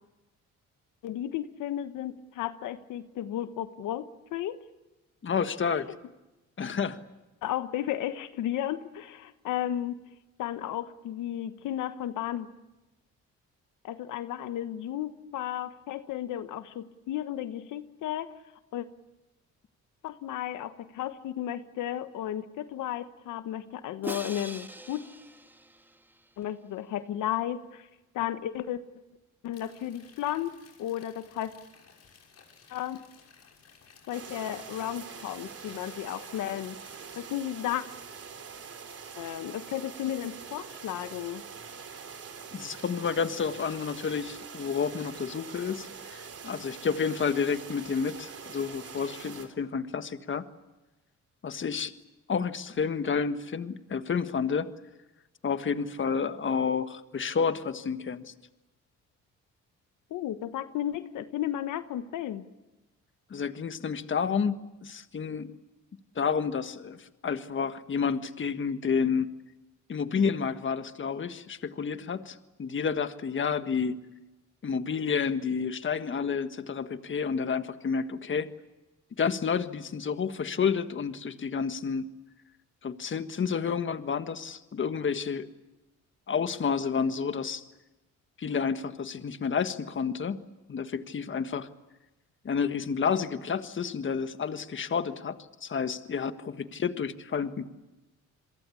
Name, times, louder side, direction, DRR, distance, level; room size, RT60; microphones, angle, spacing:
voice 1, 1.0-4.6 7.4-10.0 10.4-12.5 13.8-18.3 18.7-18.9 20.0-25.1 26.4-27.9 28.1-28.8 29.4-30.5 30.8-31.5 32.7-33.0 34.1-36.8 37.2-37.8 39.2-41.4 60.1-62.4, left 12 dB, 85° left, 11 dB, 1.2 m, -34 dB
voice 2, 5.2-5.9 6.6-7.0 42.5-50.4 51.4-51.9 52.3-54.7 55.4-58.3 63.3-65.5 66.1-69.3 69.9-74.0 74.6-78.5 79.2-82.1 82.8-85.5 86.3-87.6 88.4-90.4 90.7-91.7 92.4-97.7, left 6 dB, 40° left, 10 dB, 1.5 m, -30 dB
Crash cymbal, 24.0-26.2, right 1 dB, 5° right, 2.2 m, -42 dB
sound 1, 29.5-37.2, left 5 dB, 55° left, 6.4 m, -57 dB
sound 2, 34.1-49.5, right 6 dB, 50° right, 4.0 m, -44 dB
28.5 x 22.5 x 8.4 m, 1.0 s
cardioid pair, 90°, 30 cm